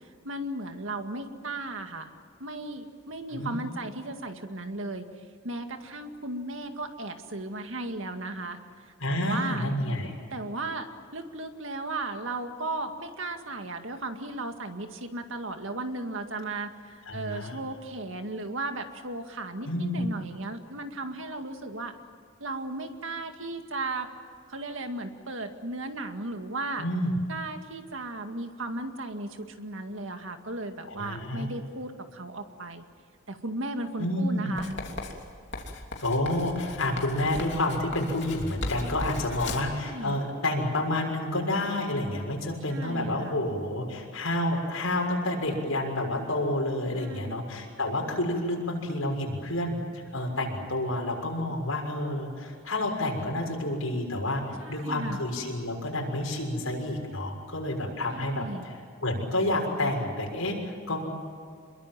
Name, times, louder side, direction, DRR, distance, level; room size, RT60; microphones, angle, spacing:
voice 1, 0.2-2.1 2.4-5.1 5.4-8.6 9.1-9.7 10.3-21.9 22.4-24.1 24.5-26.8 27.3-32.8 33.3-34.7 39.5-40.2 42.7-43.4 46.9-47.4 54.6-55.2 58.1-58.7, right 2 dB, 65° right, 6 dB, 2.1 m, -35 dB
voice 2, 9.0-10.2 17.1-17.6 19.6-20.0 26.8-27.2 30.8-31.5 34.0-34.5 36.0-49.8 50.1-54.4 54.7-58.7 59.0-61.0, left 1 dB, 85° left, 1 dB, 6.6 m, -29 dB
Writing, 34.6-39.8, left 2 dB, 60° left, 3.1 m, -37 dB
27.5 x 22.5 x 7.6 m, 2.2 s
head